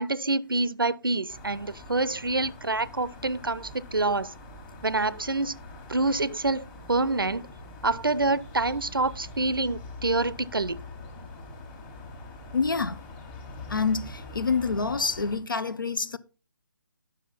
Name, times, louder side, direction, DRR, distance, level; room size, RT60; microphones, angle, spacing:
voice 1, 0.0-4.3 4.8-5.6 5.9-7.5 7.8-10.8, right 2 dB, 80° right, 0.5 m, -27 dB
sound 1, 1.3-15.4, left 2 dB, 15° left, 1.4 m, -44 dB
voice 2, 12.5-13.0 13.7-16.2, left 4 dB, 70° left, 0.7 m, -27 dB
9.7 x 6.2 x 4.2 m
figure-of-eight pair, 140°, 11 cm